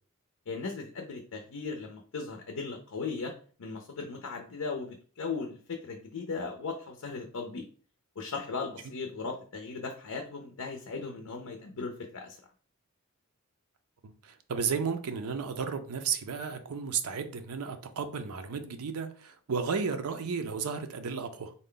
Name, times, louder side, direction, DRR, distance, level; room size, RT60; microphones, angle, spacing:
voice 1, 0.5-3.3 3.6-7.7 8.2-12.4, left 4 dB, 65° left, 0.5 m, -37 dB
voice 2, 14.0-21.5, right 6 dB, 70° right, 0.5 m, -33 dB
3.8 x 2.2 x 3.7 m
head